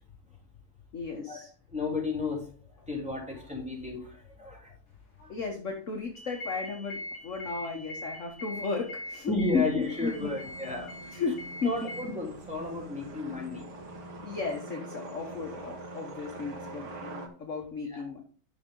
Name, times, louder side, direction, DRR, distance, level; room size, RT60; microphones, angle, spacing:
voice 1, 0.9-1.5 5.3-10.3 11.1-11.9 14.2-18.2, left 4 dB, 45° left, 2 dB, 1.4 m, -34 dB
voice 2, 1.7-2.5 2.8-4.7 5.2-5.3 9.3-10.9 11.6-13.8 17.9-18.0, left 3 dB, 5° right, -3 dB, 3.3 m, -33 dB
sound 1, 6.1-12.0, left 1 dB, 85° left, 3.9 m, -42 dB
sound 2, 9.8-17.3, right 2 dB, 55° right, 2.1 m, -44 dB
11.0 x 6.4 x 3.8 m, 0.43 s
omnidirectional pair, 2.1 m